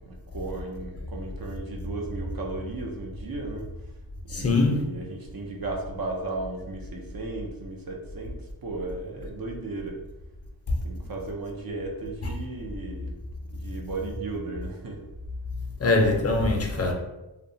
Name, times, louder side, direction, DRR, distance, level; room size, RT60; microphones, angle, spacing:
voice 1, 0.0-3.7 4.3-10.0 10.8-13.2 13.5-15.0, right 2 dB, 45° right, 0.6 m, -35 dB
voice 2, 4.3-4.9 15.8-16.9, left 2 dB, 30° left, 0.5 m, -22 dB
2.7 x 2.2 x 2.6 m
wide cardioid pair, 70°, 48 cm